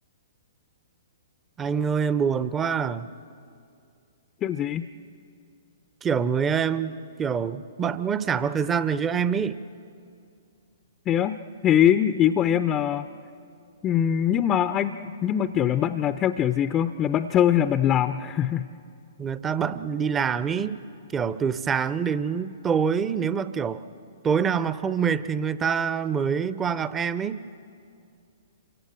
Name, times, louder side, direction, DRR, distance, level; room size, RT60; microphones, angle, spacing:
voice 1, 1.6-3.1 6.0-6.9 7.2-9.6 19.2-20.8 21.1-23.8 24.2-27.4, right 7 dB, 15° right, 15 dB, 0.7 m, -25 dB
voice 2, 4.4-4.9 11.1-13.1 13.8-18.7, left 10 dB, 20° left, 11 dB, 0.6 m, -22 dB
28.0 x 24.0 x 7.6 m, 2.4 s
figure-of-eight pair, 115°, 0 cm